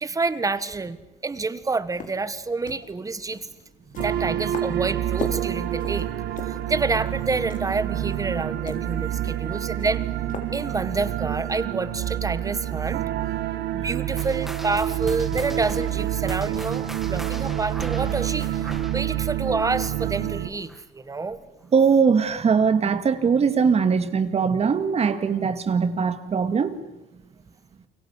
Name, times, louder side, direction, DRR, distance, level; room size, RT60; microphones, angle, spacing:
voice 1, 0.0-3.5 4.0-6.1 6.4-10.0 10.5-13.0 13.7-21.4, right 3 dB, 20° right, 1.5 m, -28 dB
sound 1, 1.8-11.0, left 5 dB, 50° left, 4.0 m, -41 dB
sound 2, 4.0-20.5, right 12 dB, 75° right, 1.8 m, -28 dB
sound 3, 14.2-21.0 21.3-21.6 22.2-22.3 23.1-23.2, equal, ahead, 2.0 m, -39 dB
voice 2, 21.7-26.8, right 6 dB, 40° right, 2.2 m, -21 dB
29.5 x 23.0 x 8.3 m
cardioid pair, 110°, 17 cm